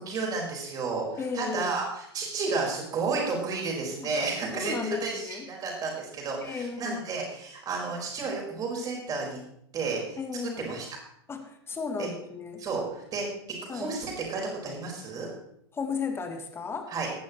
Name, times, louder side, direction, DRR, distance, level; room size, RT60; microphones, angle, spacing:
voice 1, 0.0-9.4 9.7-10.2 10.6-10.8 12.0-12.1 12.6-13.2 13.6-15.3 16.9-17.1, right 4 dB, 25° right, -1 dB, 5.0 m, -32 dB
voice 2, 1.2-1.7 4.0-4.1 4.5-5.5 6.4-7.0 10.2-10.7 11.3-12.6 13.7-13.9 15.7-16.9, left 5 dB, 15° left, 6 dB, 1.6 m, -34 dB
18.0 x 11.5 x 3.2 m, 0.73 s
figure-of-eight pair, 90°, 14 cm